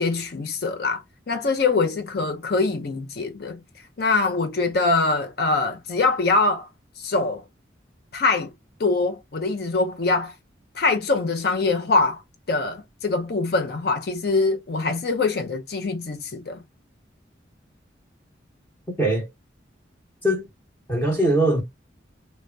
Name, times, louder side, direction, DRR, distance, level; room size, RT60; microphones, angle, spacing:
voice 1, 0.0-3.6 4.0-6.7 7.0-7.4 8.1-8.5 8.8-10.3 10.8-12.2 12.5-16.6, left 3 dB, 55° left, 0.5 m, -23 dB
voice 2, 19.0-19.3 20.2-20.5 20.9-21.6, right 1 dB, 10° left, 0.8 m, -21 dB
3.3 x 2.1 x 2.5 m
head